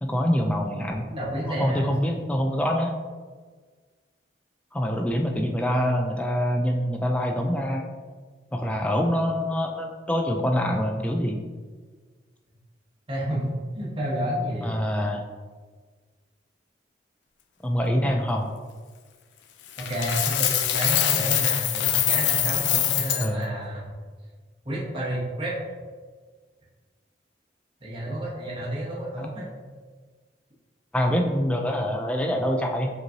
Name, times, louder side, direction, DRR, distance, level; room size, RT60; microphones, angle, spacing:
voice 1, 0.0-1.1 1.6-2.9 4.7-7.9 8.5-11.4 14.6-15.3 17.6-18.5 23.2-23.5 30.9-32.9, equal, 5° left, 2 dB, 0.3 m, -25 dB
voice 2, 1.1-1.9 13.1-14.8 19.8-23.9 24.6-25.5 27.8-29.6, right 1 dB, 30° right, -6 dB, 1.1 m, -30 dB
Coin (dropping), 19.8-23.3, left 11 dB, 75° left, 0.4 m, -24 dB
5.1 x 3.0 x 2.8 m, 1.5 s
head